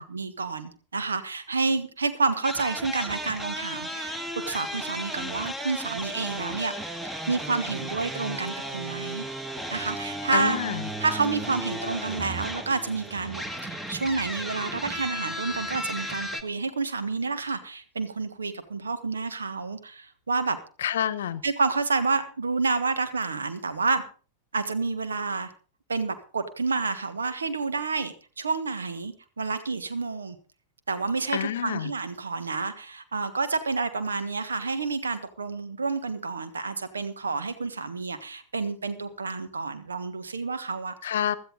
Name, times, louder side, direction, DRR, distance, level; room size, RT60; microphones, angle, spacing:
voice 1, 0.0-4.2 4.5-6.7 7.0-9.2 9.7-10.6 11.0-20.6 21.4-24.0 24.5-25.5 25.9-30.4 30.9-41.1, right 4 dB, 75° right, 10 dB, 1.4 m, -29 dB
sound 1, 2.4-16.4, equal, 10° right, 1.6 m, -34 dB
voice 2, 10.3-10.8 20.8-21.4 31.3-31.9 41.0-41.4, left 10 dB, 60° left, 18 dB, 0.9 m, -28 dB
16.5 x 13.0 x 3.9 m, 0.37 s
figure-of-eight pair, 90°, 0 cm